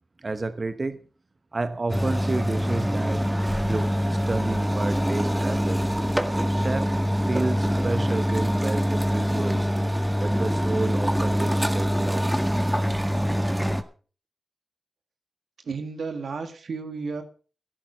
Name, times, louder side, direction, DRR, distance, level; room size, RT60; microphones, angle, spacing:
voice 1, 0.2-1.1 1.5-3.2 3.6-5.8 6.5-6.9 7.2-9.7 10.2-12.4, right 3 dB, 50° right, 11 dB, 1.0 m, -30 dB
sound 1, 1.9-13.8, equal, 10° right, 1.7 m, -24 dB
voice 2, 15.7-17.2, right 4 dB, 85° right, 7 dB, 2.0 m, -32 dB
13.0 x 11.0 x 5.6 m, 0.39 s
cardioid pair, 50°, 0 cm